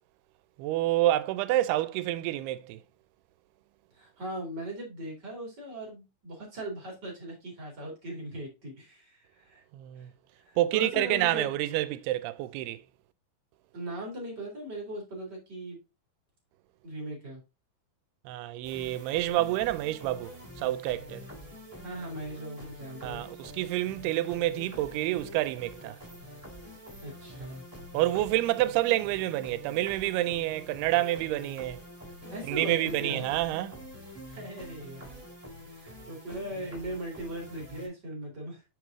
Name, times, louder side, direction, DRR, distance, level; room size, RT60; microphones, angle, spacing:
voice 1, 0.6-2.8 9.7-10.1 10.6-12.8 18.3-21.2 23.0-26.0 27.9-31.8 32.5-33.8, right 15 dB, 85° right, 2.5 m, -28 dB
voice 2, 3.9-9.6 10.0-10.1 10.4-11.5 13.7-15.8 16.8-17.4 21.8-23.2 27.0-27.7 32.3-33.3 34.3-35.2 35.8-38.6, right 1 dB, 30° right, 2.3 m, -39 dB
sound 1, 18.6-37.9, equal, 15° right, 1.4 m, -46 dB
6.7 x 4.8 x 3.6 m
omnidirectional pair, 4.6 m